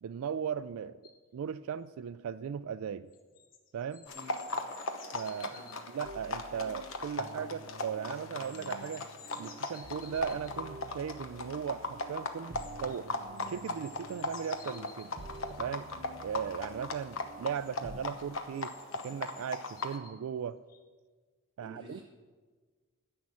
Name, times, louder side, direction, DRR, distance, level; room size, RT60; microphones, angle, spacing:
voice 1, 0.0-1.0 1.3-3.1 3.7-4.0 5.1-5.5 5.9-9.0 9.3-13.1 13.5-15.2 15.6-15.9 16.2-18.8 19.0-20.6 21.6-22.0, right 7 dB, 85° right, 14 dB, 0.3 m, -37 dB
sound 1, 1.0-1.2 3.1-5.8 8.1-10.5 12.5-13.0 13.4-15.5 17.1-17.2 17.5-17.7 18.5-20.2 20.7-20.8, left 5 dB, 40° left, 1.3 m, -54 dB
sound 2, 4.1-20.0, left 3 dB, 70° left, 1.0 m, -39 dB
sound 3, 6.0-18.0, right 2 dB, 50° right, 0.8 m, -50 dB
voice 2, 21.6-22.0, right 1 dB, 25° right, -6 dB, 3.9 m, -49 dB
10.5 x 7.5 x 8.4 m, 1.4 s
head